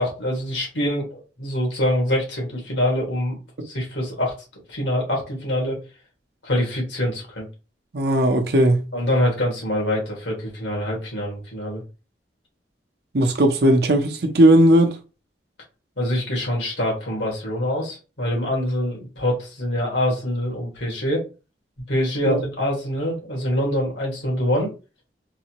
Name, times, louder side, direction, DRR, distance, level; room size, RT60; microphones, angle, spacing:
voice 1, 0.0-3.4 3.6-4.3 4.7-5.8 6.4-7.5 8.9-11.8 16.0-21.2 21.9-24.7, left 1 dB, 80° left, 1.9 m, -24 dB
voice 2, 7.9-8.8 13.1-14.9 22.2-22.4, right 1 dB, 60° right, 0.7 m, -17 dB
4.0 x 2.7 x 3.0 m
head